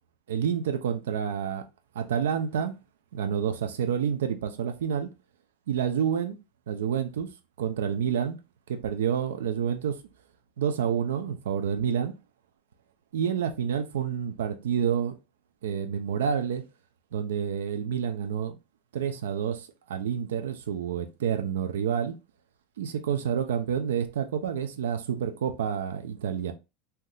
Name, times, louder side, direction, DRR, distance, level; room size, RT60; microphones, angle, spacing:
voice 1, 0.3-1.6 1.9-2.7 3.1-5.1 5.7-6.4 6.7-7.3 7.6-8.4 8.7-10.0 10.6-12.1 13.1-15.2 15.6-16.6 17.1-18.6 18.9-22.1 22.8-26.5, right 8 dB, 85° right, 0.4 m, -28 dB
3.4 x 2.8 x 2.3 m
hypercardioid pair, 105°, 0 cm